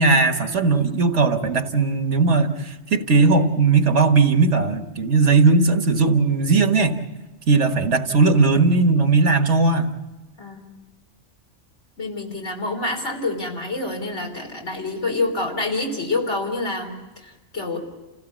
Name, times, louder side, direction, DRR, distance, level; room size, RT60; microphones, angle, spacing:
voice 1, 0.0-7.0 7.5-9.9, right 4 dB, 70° right, 7 dB, 1.6 m, -18 dB
voice 2, 10.4-10.7 12.0-17.8, left 2 dB, 70° left, 1 dB, 3.8 m, -27 dB
29.0 x 16.0 x 7.3 m, 1.1 s
omnidirectional pair, 1.2 m